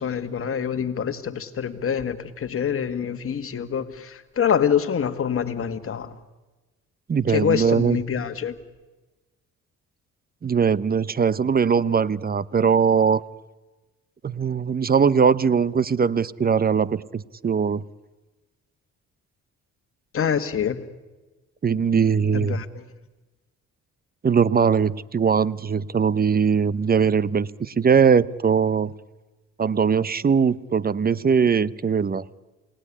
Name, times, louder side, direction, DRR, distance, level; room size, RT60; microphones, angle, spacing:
voice 1, 0.0-6.2 7.3-8.5 20.1-20.8 22.3-22.8, left 8 dB, 45° left, 9 dB, 1.9 m, -25 dB
voice 2, 7.1-8.0 10.4-13.2 14.2-17.8 21.6-22.6 24.2-28.9 29.6-32.2, right 6 dB, 30° right, 20 dB, 0.8 m, -21 dB
28.5 x 19.5 x 10.0 m, 1.2 s
cardioid pair, 90°, 30 cm